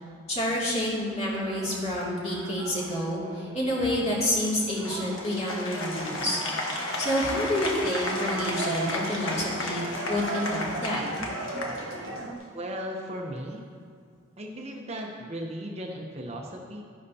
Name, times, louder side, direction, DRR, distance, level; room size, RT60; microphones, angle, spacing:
voice 1, 0.3-6.4 7.0-9.8 10.1-11.0, left 1 dB, 35° left, -6 dB, 2.5 m, -28 dB
sound 1, 1.0-12.4, right 3 dB, 75° right, 1.0 m, -38 dB
Applause, 4.8-12.4, left 2 dB, 70° left, 1.4 m, -34 dB
voice 2, 12.5-13.7 14.4-16.8, equal, 30° right, 0 dB, 0.8 m, -36 dB
13.0 x 10.5 x 2.8 m, 2.2 s
head